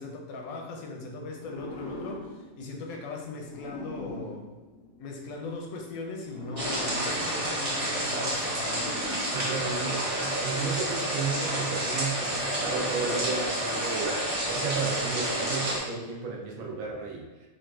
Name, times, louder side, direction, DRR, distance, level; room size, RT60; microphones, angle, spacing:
voice 1, 0.0-4.5 5.0-9.1, left 3 dB, 85° left, 1 dB, 1.0 m, -38 dB
sound 1, 1.3-5.5 6.2-10.1, left 2 dB, 60° left, 0.7 m, -43 dB
sound 2, 6.6-15.8, right 1 dB, 35° right, 0.6 m, -30 dB
voice 2, 9.3-14.2 14.5-17.3, right 4 dB, 75° right, -1 dB, 1.0 m, -33 dB
3.8 x 2.3 x 2.3 m, 1.2 s
omnidirectional pair, 1.5 m